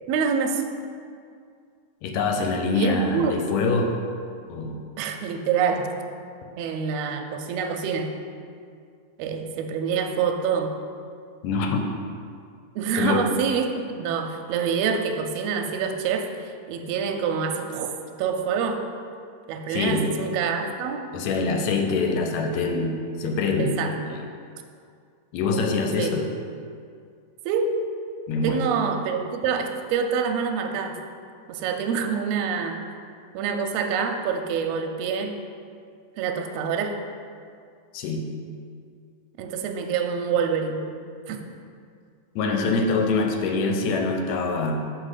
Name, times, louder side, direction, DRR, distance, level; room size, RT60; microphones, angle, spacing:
voice 1, 0.1-0.6 2.7-3.4 5.0-5.9 6.6-8.1 9.2-10.7 12.7-18.8 19.5-21.1 23.6-23.9 26.0-26.1 27.4-27.8 28.4-31.0 31.5-32.9 33.3-35.3 36.2-37.0 39.4-40.8 41.3-41.4, right 6 dB, 80° right, 4 dB, 1.6 m, -26 dB
voice 2, 2.0-3.9 4.5-4.8 11.4-11.9 13.0-13.3 19.7-20.1 21.1-23.7 24.0-24.3 25.3-26.3 28.3-28.7 37.9-38.3 42.4-44.8, left 3 dB, 80° left, 3 dB, 1.8 m, -24 dB
6.4 x 4.1 x 4.8 m, 2.3 s
omnidirectional pair, 3.3 m